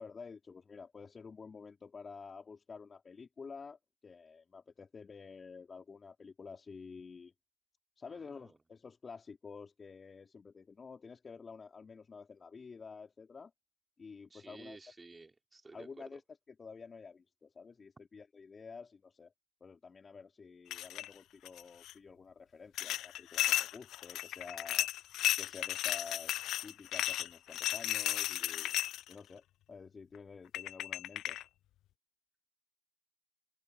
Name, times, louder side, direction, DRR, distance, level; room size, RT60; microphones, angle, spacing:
voice 1, 0.0-7.3 8.0-13.5 14.0-14.8 15.7-16.2 16.6-19.3 19.6-24.9 25.4-28.8 29.1-31.4, left 5 dB, 20° left, 3.8 m, -50 dB
voice 2, 8.1-8.6 14.3-16.2, right 3 dB, 15° right, 4.2 m, -54 dB
sound 1, 20.7-21.1 21.4-21.9 22.8-29.1 30.1-30.2 30.5-31.4, left 14 dB, 45° left, 0.3 m, -34 dB
hypercardioid pair, 90°, 0 cm